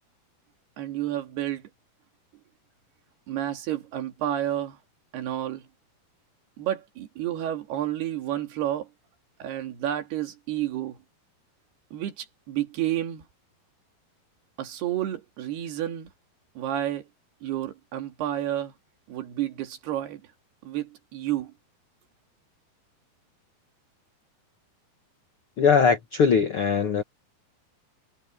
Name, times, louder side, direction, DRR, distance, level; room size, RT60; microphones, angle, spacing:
voice 1, 0.8-1.7 3.3-4.8 5.1-5.7 6.6-8.9 9.4-11.0 11.9-13.3 14.6-16.1 16.6-17.1 17.4-18.7 19.1-20.2 20.6-21.5, right 12 dB, 75° right, 4.1 m, -30 dB
voice 2, 25.6-27.0, left 6 dB, 65° left, 1.3 m, -20 dB
omnidirectional pair, 4.7 m